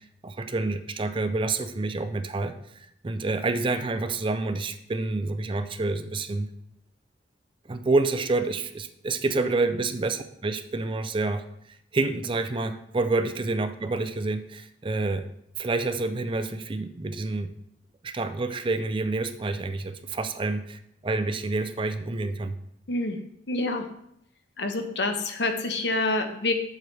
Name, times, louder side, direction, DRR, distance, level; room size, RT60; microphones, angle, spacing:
voice 1, 0.0-2.5 3.0-6.5 7.7-11.4 11.9-15.2 15.6-17.5 18.0-22.6, right 3 dB, 30° right, 9 dB, 0.4 m, -28 dB
voice 2, 22.9-23.2 23.5-23.9 24.6-26.5, left 2 dB, 75° left, 6 dB, 1.0 m, -27 dB
7.6 x 7.3 x 3.3 m, 0.74 s
head